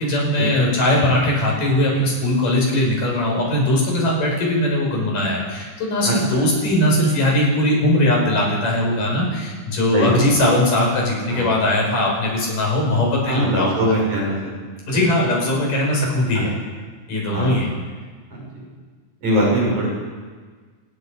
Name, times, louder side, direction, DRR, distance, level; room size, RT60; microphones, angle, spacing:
voice 1, 0.0-13.8 14.9-16.5 17.1-17.7, left 1 dB, 75° left, -2 dB, 7.9 m, -20 dB
voice 2, 9.9-10.3 11.3-11.5 13.3-14.4 17.3-17.6 19.2-19.9, right 1 dB, 60° right, -3 dB, 8.1 m, -21 dB
26.5 x 21.0 x 5.4 m, 1.5 s
omnidirectional pair, 3.7 m